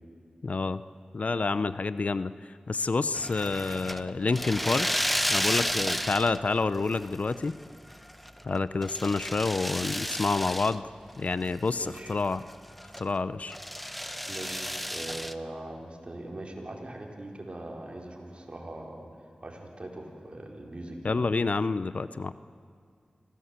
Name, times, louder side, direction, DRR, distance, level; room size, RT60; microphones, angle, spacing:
voice 1, 0.4-0.8 1.1-2.3 2.7-4.9 5.3-7.6 8.4-10.9 11.2-12.4 13.0-13.6 21.0-22.3, left 3 dB, 60° left, 15 dB, 0.6 m, -28 dB
sound 1, 3.1-6.6 6.9-7.5 7.9-10.7 11.1-11.2 11.6-13.1 13.5-15.3, equal, 5° left, 0.9 m, -32 dB
voice 2, 11.8-12.2 14.3-21.3, right 1 dB, 45° right, 1 dB, 4.3 m, -41 dB
25.5 x 17.0 x 8.2 m, 2.2 s
cardioid pair, 40°, 3 cm